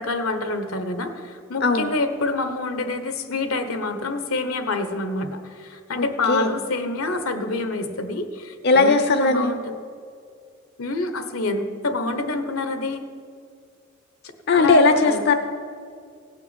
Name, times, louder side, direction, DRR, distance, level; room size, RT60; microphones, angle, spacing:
voice 1, 0.0-8.9 9.2-9.6 10.8-13.1 14.5-15.2, left 2 dB, 85° left, 9 dB, 1.2 m, -27 dB
voice 2, 1.6-1.9 6.0-6.5 8.6-9.6 14.5-15.3, left 3 dB, 50° left, 7 dB, 0.6 m, -18 dB
16.5 x 5.8 x 9.0 m, 2.3 s
head